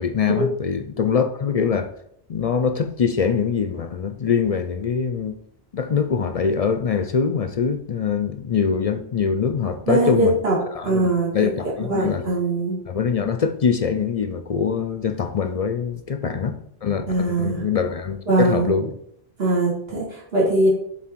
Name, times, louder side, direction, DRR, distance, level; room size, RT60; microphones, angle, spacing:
voice 1, 0.0-1.9 2.3-5.4 5.7-10.3 10.7-12.2 12.9-18.8, left 6 dB, 50° left, 8 dB, 0.5 m, -23 dB
voice 2, 9.9-10.6 10.8-11.3 11.6-12.8 16.3-16.4 17.1-17.6 18.3-18.8 19.4-20.7, right 2 dB, 70° right, -5 dB, 2.4 m, -21 dB
7.4 x 4.0 x 4.5 m, 0.71 s
omnidirectional pair, 1.0 m